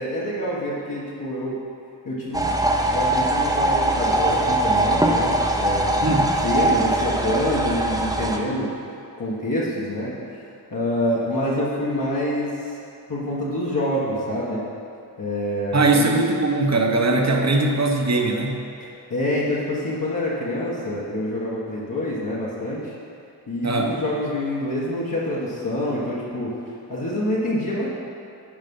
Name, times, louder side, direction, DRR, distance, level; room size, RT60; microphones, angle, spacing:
voice 1, 0.0-1.6 2.0-2.5 2.9-8.7 9.2-10.1 10.7-12.8 13.1-14.6 15.2-16.0 18.8-22.9 23.5-26.5 26.9-27.9, left 1 dB, 55° left, -7 dB, 1.6 m, -26 dB
sound 1, 2.3-8.4, right 1 dB, 10° right, 0.8 m, -21 dB
voice 2, 15.7-18.6 23.6-24.0, right 2 dB, 40° right, 2 dB, 1.1 m, -20 dB
10.5 x 5.0 x 5.5 m, 2.6 s
cardioid pair, 70°, 41 cm